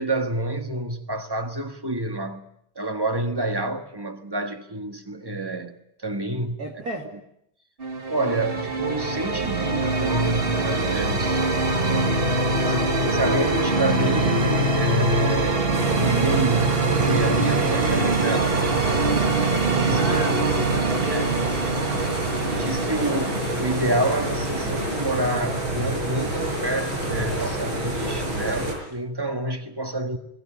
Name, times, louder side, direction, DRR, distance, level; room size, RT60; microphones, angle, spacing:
voice 1, 0.0-2.4 2.7-5.8 6.0-6.6 8.1-11.4 12.7-15.6 15.9-18.8 19.7-20.4 21.1-21.3 22.5-23.3 23.6-30.2, right 2 dB, 15° right, 1.4 m, -28 dB
voice 2, 6.6-7.1 12.6-13.4 16.5-16.7 19.9-21.5 23.0-23.3, right 1 dB, 50° right, 2.9 m, -34 dB
sound 1, 7.8-25.6, right 3 dB, 30° right, 1.7 m, -24 dB
sound 2, 15.7-28.7, right 1 dB, 85° right, 6.9 m, -28 dB
22.0 x 19.0 x 8.8 m
omnidirectional pair, 2.2 m